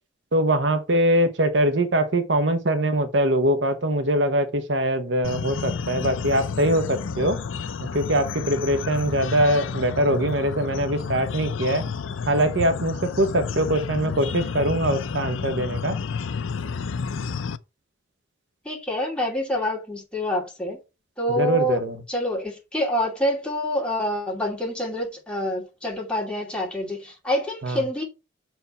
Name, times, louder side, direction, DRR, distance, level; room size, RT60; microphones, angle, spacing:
voice 1, 0.3-7.4 7.9-11.8 12.3-16.0 21.4-22.0 27.6-27.8, right 1 dB, 65° right, 1.0 m, -22 dB
sound 1, 5.2-17.6, left 5 dB, 85° left, 0.5 m, -31 dB
voice 2, 18.6-20.8 21.2-21.8 22.1-28.0, equal, 5° left, 2.6 m, -26 dB
6.6 x 4.6 x 5.5 m
head